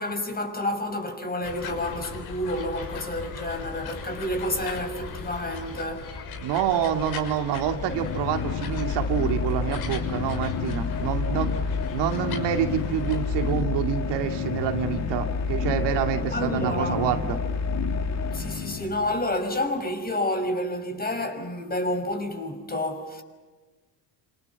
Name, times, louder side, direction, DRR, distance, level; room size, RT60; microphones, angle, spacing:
voice 1, 0.0-6.1 16.1-17.0 18.3-23.2, left 1 dB, 20° left, 5.9 m, -29 dB
sound 1, 1.4-13.6, left 4 dB, 60° left, 6.1 m, -38 dB
voice 2, 6.4-11.5 11.9-17.4, right 9 dB, 70° right, 2.8 m, -27 dB
sound 2, 7.5-19.3, left 5 dB, 40° left, 2.6 m, -29 dB
28.5 x 28.0 x 7.2 m
cardioid pair, 110°, 43 cm